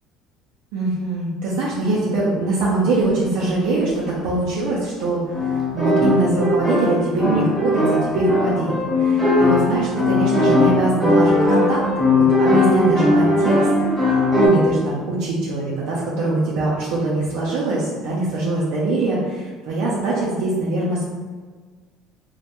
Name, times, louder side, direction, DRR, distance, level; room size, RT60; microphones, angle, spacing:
voice 1, 0.7-13.6 14.0-21.1, right 2 dB, 80° right, -6 dB, 0.5 m, -23 dB
sound 1, 3.1-3.3 5.3-14.5, left 1 dB, 5° right, 0.8 m, -18 dB
2.2 x 2.1 x 2.9 m, 1.5 s
cardioid pair, 120°, 0 cm